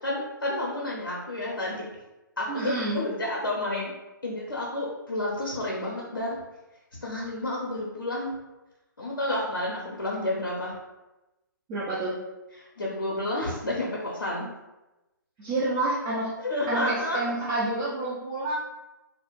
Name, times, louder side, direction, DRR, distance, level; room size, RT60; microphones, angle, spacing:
voice 1, 0.0-1.9 2.4-3.9 4.2-6.4 7.0-8.3 9.0-10.7 12.6-14.5 16.4-17.2, left 1 dB, 70° left, -4 dB, 0.6 m, -30 dB
voice 2, 2.5-3.0 11.7-12.2 15.4-16.3 16.7-18.6, right 2 dB, 15° right, -7 dB, 0.3 m, -28 dB
2.3 x 2.0 x 2.9 m, 1.0 s
figure-of-eight pair, 130°, 11 cm